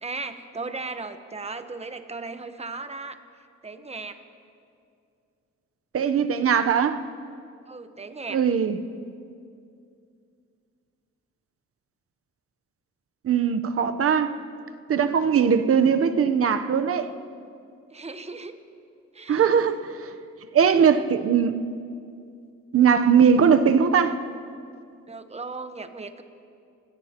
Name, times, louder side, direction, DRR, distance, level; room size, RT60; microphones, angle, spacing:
voice 1, 0.0-3.2 3.6-4.2 7.7-8.4 17.9-18.6 19.1-19.5 25.1-26.2, right 3 dB, 20° right, 9 dB, 1.1 m, -36 dB
voice 2, 5.9-7.0 8.3-8.8 13.2-14.3 14.9-17.1 19.3-19.9 20.5-21.6 22.7-24.2, right 7 dB, 50° right, 9 dB, 0.9 m, -20 dB
26.0 x 17.0 x 3.0 m, 2.4 s
cardioid pair, 90°, 30 cm